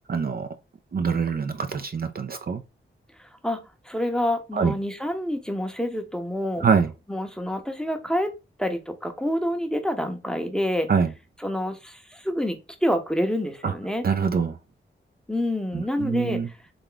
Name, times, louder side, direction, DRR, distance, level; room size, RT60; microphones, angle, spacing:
voice 1, 0.1-0.5 0.9-2.6 4.5-4.7 6.6-6.9 10.9-11.1 13.6-13.7 14.0-14.6 15.7-16.5, right 6 dB, 50° right, 0.4 m, -24 dB
voice 2, 3.2-6.7 7.1-8.3 8.6-10.9 11.4-14.0 15.3-16.6, equal, 5° left, 0.7 m, -27 dB
3.5 x 3.4 x 3.8 m
wide cardioid pair, 90°, 21 cm